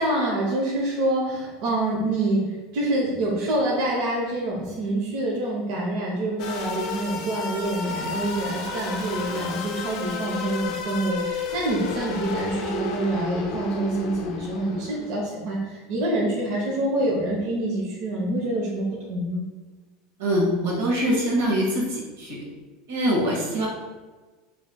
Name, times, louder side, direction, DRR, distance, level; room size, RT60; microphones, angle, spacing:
voice 1, 0.0-19.4, right 1 dB, 65° right, -3 dB, 0.8 m, -26 dB
sound 1, 6.4-15.2, left 4 dB, 60° left, 0.6 m, -32 dB
voice 2, 20.2-22.4 22.9-23.7, equal, 90° right, -3 dB, 1.3 m, -24 dB
4.9 x 3.2 x 2.3 m, 1.3 s
supercardioid pair, 110°, 0 cm